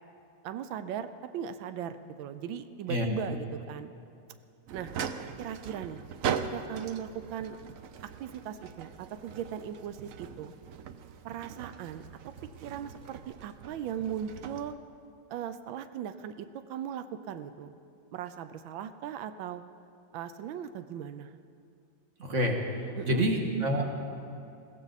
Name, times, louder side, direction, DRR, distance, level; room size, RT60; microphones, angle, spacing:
voice 1, 0.4-3.9 4.7-4.9 5.4-7.6 8.2-10.5 11.2-12.3 12.6-14.8 15.3-17.8 18.1-19.6 20.1-21.4 23.0-23.3, right 9 dB, 90° right, 10 dB, 1.4 m, -38 dB
sound 1, 4.7-14.7, right 7 dB, 70° right, 0.8 m, -40 dB
voice 2, 22.2-22.6 23.1-23.8, equal, 40° right, 1 dB, 1.9 m, -27 dB
21.5 x 15.5 x 4.1 m, 2.6 s
omnidirectional pair, 2.1 m